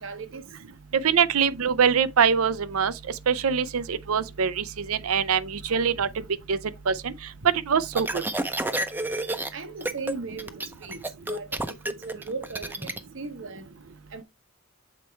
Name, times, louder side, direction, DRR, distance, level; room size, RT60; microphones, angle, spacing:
voice 1, 0.0-0.4 9.5-11.0 11.3-11.6 11.8-12.9 13.1-13.6 14.1-14.2, right 4 dB, 60° right, 1.0 m, -37 dB
voice 2, 1.0-2.9 3.3-6.1 6.5-6.6 6.9-7.1 7.4-8.2, right 7 dB, 85° right, 0.6 m, -23 dB
sound 1, 7.9-9.5 9.8-10.1 10.4-13.0, right 1 dB, 10° right, 0.5 m, -30 dB
7.4 x 4.4 x 3.2 m
head